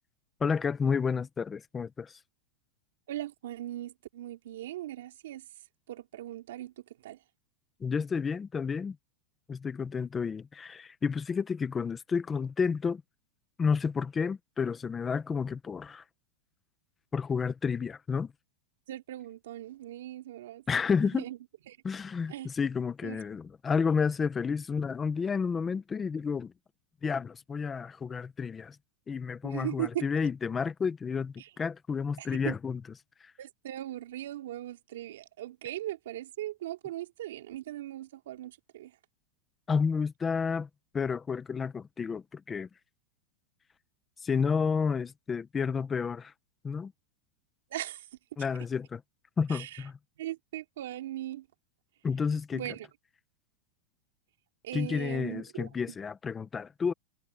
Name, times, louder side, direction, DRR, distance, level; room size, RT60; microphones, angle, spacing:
voice 1, 0.4-2.2 7.8-9.0 9.5-13.0 13.6-16.0 17.1-18.3 20.7-21.2 21.8-26.5 27.0-28.7 29.1-32.8 39.7-40.7 40.9-42.7 44.2-46.3 46.6-46.9 48.4-49.0 49.4-50.0 52.0-52.6 54.7-56.9, left 5 dB, 15° left, 0.8 m, -30 dB
voice 2, 3.1-5.4 5.9-6.7 7.0-7.2 18.9-20.6 21.0-21.4 21.7-21.8 22.3-22.5 23.0-23.2 29.4-30.0 31.4-31.5 32.2-32.6 33.4-38.9 47.7-48.1 49.5-49.8 50.2-51.5 52.5-52.9 54.6-55.7, right 13 dB, 75° right, 2.9 m, -39 dB
supercardioid pair, 170°, 0 cm